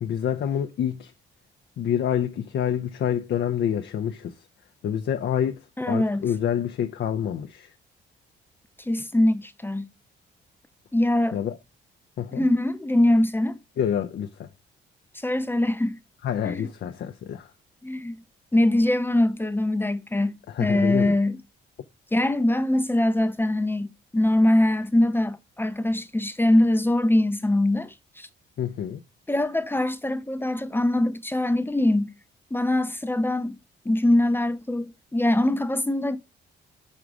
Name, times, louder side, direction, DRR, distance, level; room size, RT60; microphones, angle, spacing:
voice 1, 0.0-1.1 1.8-4.3 4.8-7.7 11.3-11.6 12.2-12.5 13.8-14.5 16.2-17.5 20.5-21.2 28.6-29.0, left 9 dB, 65° left, 0.7 m, -27 dB
voice 2, 5.8-6.3 8.9-9.9 10.9-11.4 12.3-13.6 15.2-16.0 16.5-16.7 17.8-18.2 18.5-21.4 22.1-28.3 29.3-32.1 32.5-33.6 33.9-36.2, left 1 dB, 10° left, 0.7 m, -23 dB
6.2 x 3.9 x 4.8 m
cardioid pair, 90°, 20 cm